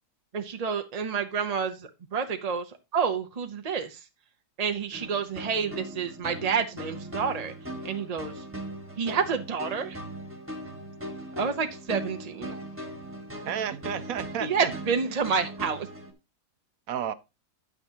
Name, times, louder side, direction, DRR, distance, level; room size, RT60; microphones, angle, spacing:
voice 1, 0.3-4.0 4.6-7.5 7.8-8.4 9.0-10.0 11.4-12.6 14.4-15.9, right 6 dB, 40° right, 0.5 m, -29 dB
sound 1, 4.9-16.1, right 1 dB, 10° right, 1.8 m, -39 dB
voice 2, 13.4-14.7 16.9-17.1, right 9 dB, 65° right, 1.0 m, -31 dB
9.9 x 8.6 x 2.8 m
omnidirectional pair, 1.8 m